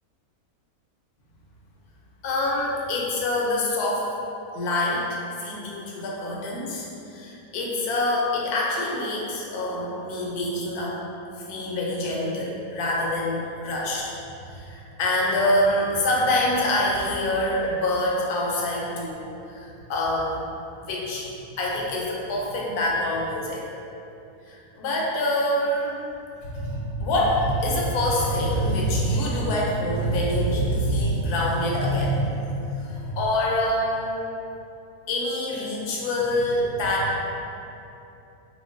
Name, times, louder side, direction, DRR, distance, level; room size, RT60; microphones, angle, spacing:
voice 1, 2.2-4.1 4.5-11.0 11.5-14.1 14.5-20.4 20.9-21.3 21.6-23.6 24.5-26.0 26.4-34.2 35.1-37.2, left 1 dB, 80° left, -4 dB, 1.1 m, -25 dB
4.2 x 2.2 x 2.5 m, 2.8 s
omnidirectional pair, 1.6 m